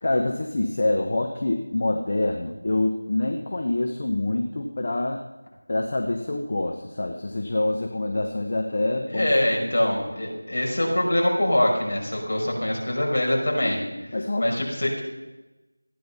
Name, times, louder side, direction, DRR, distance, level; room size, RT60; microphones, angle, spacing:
voice 1, 0.0-5.2 5.7-9.3 9.6-9.7 14.1-14.5, left 2 dB, 40° left, 3 dB, 1.2 m, -26 dB
voice 2, 9.1-13.8 14.4-15.0, left 1 dB, 60° left, -1 dB, 5.5 m, -23 dB
15.5 x 10.0 x 5.7 m, 1.1 s
figure-of-eight pair, 170°, 0 cm